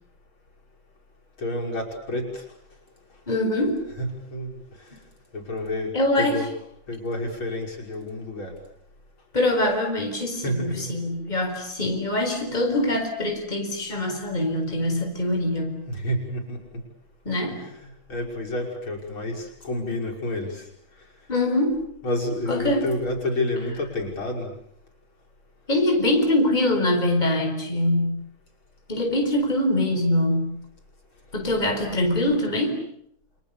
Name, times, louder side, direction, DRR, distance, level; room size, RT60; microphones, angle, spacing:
voice 1, 1.4-2.5 4.0-5.0 5.3-6.5 6.9-8.5 10.4-10.9 15.9-16.6 17.5-20.7 22.0-24.5, left 1 dB, 70° left, 0 dB, 6.5 m, -29 dB
voice 2, 3.3-3.8 5.9-6.4 9.3-15.8 17.2-17.6 21.3-21.8 22.5-22.9 25.7-28.2 28.9-30.6 31.3-32.8, left 1 dB, 20° left, 2 dB, 4.8 m, -23 dB
29.5 x 27.0 x 7.1 m, 0.74 s
omnidirectional pair, 2.3 m